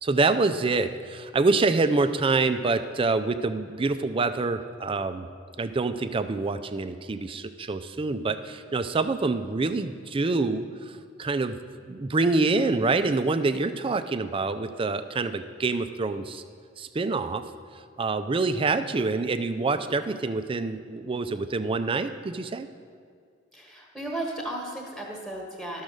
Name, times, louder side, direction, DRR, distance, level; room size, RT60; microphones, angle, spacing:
voice 1, 0.0-5.3 5.6-11.6 11.9-16.4 16.8-17.4 18.0-22.7, right 3 dB, 25° right, 10 dB, 0.4 m, -26 dB
voice 2, 23.5-25.8, right 1 dB, ahead, -1 dB, 1.4 m, -35 dB
12.0 x 6.4 x 6.4 m, 2.1 s
head